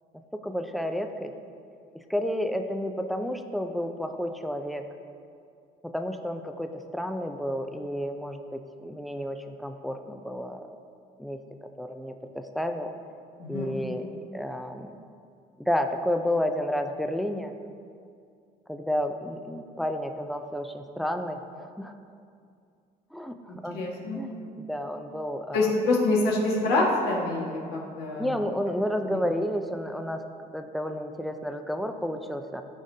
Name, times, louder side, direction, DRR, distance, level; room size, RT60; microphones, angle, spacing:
voice 1, 0.3-1.3 2.1-4.9 5.8-10.7 11.2-12.9 13.5-14.1 14.3-15.0 15.6-17.5 18.7-21.9 23.1-23.8 24.1-25.7 28.2-30.2 30.5-32.6, equal, ahead, 6 dB, 0.5 m, -31 dB
voice 2, 13.4-13.8 23.5-24.2 25.5-28.4 29.0-29.2, left 2 dB, 85° left, -3 dB, 1.7 m, -26 dB
13.5 x 5.1 x 2.7 m, 2.4 s
cardioid pair, 120°, 16 cm